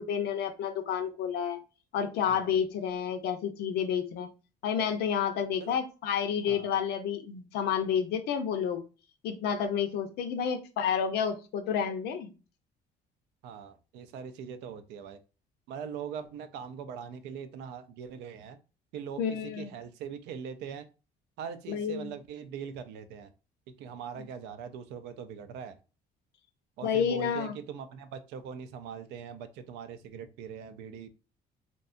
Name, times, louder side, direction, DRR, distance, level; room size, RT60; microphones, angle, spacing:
voice 1, 0.0-1.6 1.9-4.3 4.6-8.8 9.2-12.3 19.2-19.7 21.7-22.1 26.8-27.6, left 7 dB, 75° left, 7 dB, 0.5 m, -30 dB
voice 2, 2.3-2.6 5.6-5.8 6.5-6.7 13.4-15.2 15.7-18.6 18.9-20.9 21.4-23.3 23.8-25.8 26.8-31.1, right 7 dB, 90° right, 10 dB, 0.4 m, -41 dB
2.7 x 2.2 x 2.5 m, 0.32 s
cardioid pair, 110°, 17 cm